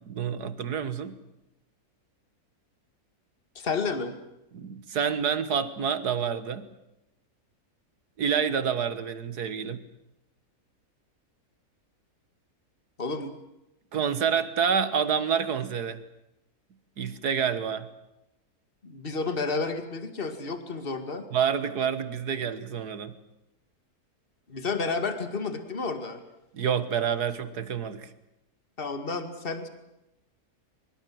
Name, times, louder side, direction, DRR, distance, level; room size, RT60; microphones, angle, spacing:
voice 1, 0.1-1.1 4.5-6.7 8.2-9.8 13.9-16.0 17.0-17.9 21.3-23.2 26.5-28.1, right 7 dB, 85° right, 12 dB, 2.0 m, -28 dB
voice 2, 3.6-4.1 13.0-13.3 18.8-21.2 24.5-26.2 28.8-29.7, left 4 dB, 35° left, 8 dB, 2.3 m, -31 dB
24.0 x 22.5 x 7.7 m, 0.90 s
omnidirectional pair, 1.6 m